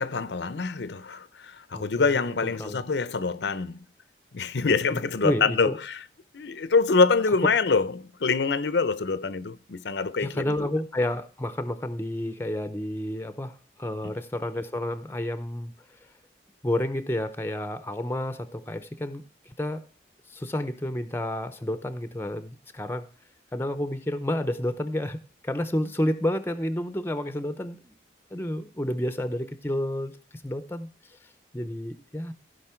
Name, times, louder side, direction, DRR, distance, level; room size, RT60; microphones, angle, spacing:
voice 1, 0.0-3.8 4.3-6.0 6.3-10.7 14.0-14.1, left 4 dB, 70° left, 0.6 m, -25 dB
voice 2, 2.4-2.8 4.6-4.8 5.2-5.8 10.2-15.7 16.6-19.8 20.3-23.1 23.5-27.9 28.3-30.9 31.5-32.3, left 1 dB, 10° left, 0.6 m, -30 dB
15.5 x 5.3 x 4.4 m
head